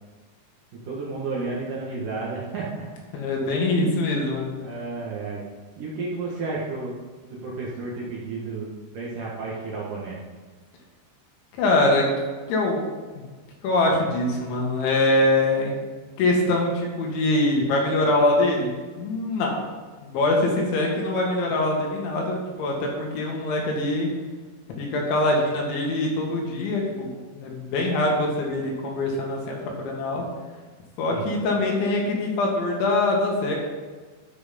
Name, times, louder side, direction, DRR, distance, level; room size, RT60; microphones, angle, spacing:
voice 1, 0.8-2.9 4.6-5.4 5.8-6.9 7.2-10.2 31.1-31.3, right 3 dB, 55° right, -5 dB, 2.6 m, -32 dB
voice 2, 3.1-4.6 11.6-12.1 12.5-12.8 13.2-13.3 13.6-15.7 16.2-19.6 20.0-24.1 24.8-30.3 31.0-33.6, left 2 dB, 75° left, -1 dB, 4.1 m, -23 dB
12.5 x 6.3 x 5.2 m, 1.4 s
omnidirectional pair, 5.6 m